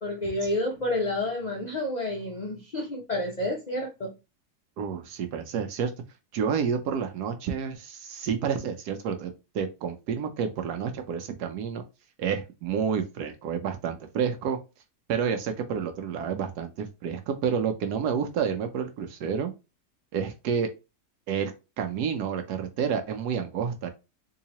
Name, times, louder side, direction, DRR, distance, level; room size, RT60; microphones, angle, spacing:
voice 1, 0.0-4.1, left 1 dB, 50° left, 0.5 m, -29 dB
voice 2, 4.8-5.9 6.3-11.8 12.2-14.6 15.1-19.5 20.1-20.7 21.3-23.9, right 7 dB, 75° right, 1.1 m, -29 dB
3.8 x 2.8 x 2.8 m
omnidirectional pair, 1.8 m